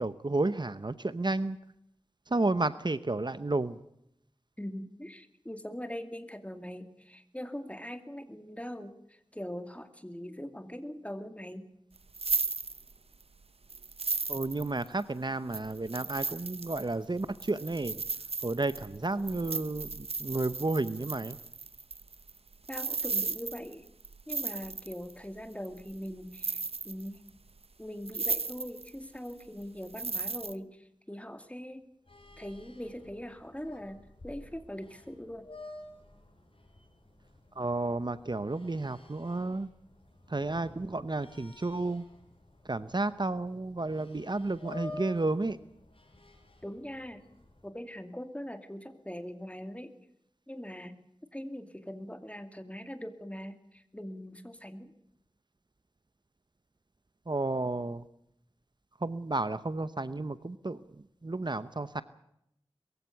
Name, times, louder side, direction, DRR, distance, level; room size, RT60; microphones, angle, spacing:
voice 1, 0.0-1.6 2.3-3.8 14.3-18.0 18.4-21.4 37.5-39.7 40.3-42.0 42.7-45.6 57.3-58.1 59.0-62.0, right 2 dB, 50° right, 14 dB, 0.9 m, -32 dB
voice 2, 4.6-11.7 22.7-23.9 24.3-27.2 27.8-31.8 32.4-35.5 46.6-47.2 47.6-49.9 50.5-51.0 51.3-54.9, equal, 15° left, 8 dB, 2.4 m, -42 dB
sound 1, 12.0-13.2 13.7-15.0 15.5-25.1 25.6-26.1 26.3-27.3 27.6-27.7 28.1-28.9 29.2-30.6, right 4 dB, 75° right, 0.8 m, -35 dB
sound 2, 32.1-47.7, left 2 dB, 65° left, 6.1 m, -51 dB
22.5 x 15.0 x 8.3 m, 0.77 s
wide cardioid pair, 55°, 10 cm